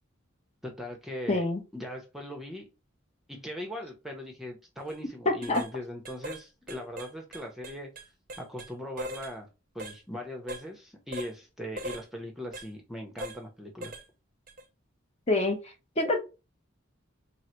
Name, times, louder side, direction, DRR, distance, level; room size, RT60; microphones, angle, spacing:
voice 1, 0.6-1.4 1.7-2.7 3.3-7.9 8.4-9.5 9.7-13.9, equal, ahead, 1 dB, 0.7 m, -40 dB
voice 2, 1.3-1.6 5.3-5.6 15.3-15.6 16.0-16.2, left 2 dB, 30° left, 4 dB, 0.8 m, -25 dB
sound 1, 4.8-5.0 5.4-5.7 6.1-6.4 6.7-8.7 9.0-9.3 9.8-10.0 10.5-10.7 11.1-11.3 11.8-12.0 12.5-12.7 13.2-13.4 13.8-14.1 14.5-14.6, right 1 dB, 45° right, 0.6 m, -39 dB
3.9 x 2.0 x 4.3 m, 0.28 s
head